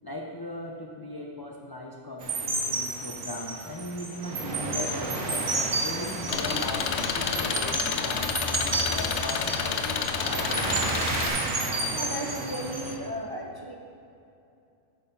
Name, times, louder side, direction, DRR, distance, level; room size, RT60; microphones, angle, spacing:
voice 1, 0.0-10.5, left 1 dB, 25° left, 0 dB, 0.5 m, -38 dB
sound 1, 2.2-13.0, right 2 dB, 85° right, 1.6 m, -31 dB
Engine, 6.3-11.3, left 6 dB, 65° left, 0.9 m, -29 dB
voice 2, 11.9-13.8, equal, 20° right, 0 dB, 0.9 m, -35 dB
9.0 x 7.4 x 5.4 m, 2.6 s
omnidirectional pair, 1.4 m